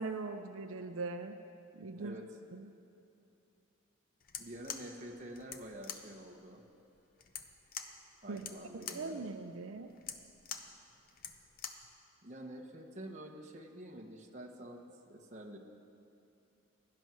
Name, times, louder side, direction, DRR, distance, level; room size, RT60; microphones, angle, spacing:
voice 1, 0.0-1.4 1.7-2.2 2.5-2.7 8.3-8.4 8.7-9.9, right 3 dB, 80° right, 8 dB, 0.6 m, -41 dB
sound 1, 4.2-11.9, left 7 dB, 45° left, 0.8 m, -46 dB
voice 2, 4.4-6.6 8.2-9.2 12.2-14.8 15.1-15.6, right 1 dB, 35° right, 1 dB, 1.1 m, -48 dB
16.5 x 11.0 x 6.2 m, 2.7 s
head